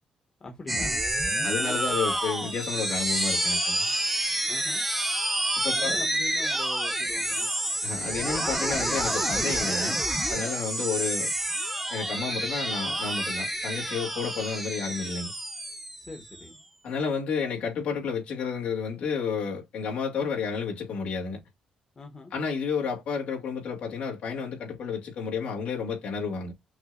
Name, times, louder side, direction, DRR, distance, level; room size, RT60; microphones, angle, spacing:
voice 1, 0.4-1.0 4.5-4.8 5.7-7.5 16.0-16.6 22.0-22.3, left 2 dB, 25° left, 1.1 m, -42 dB
sound 1, 0.7-16.5, right 1 dB, 5° right, 0.8 m, -28 dB
voice 2, 1.4-3.9 5.6-6.0 7.8-10.0 10.3-11.3 11.9-15.3 16.8-21.4 22.3-26.5, left 5 dB, 70° left, 2.2 m, -31 dB
5.9 x 2.8 x 2.4 m
cardioid pair, 145°, 2 cm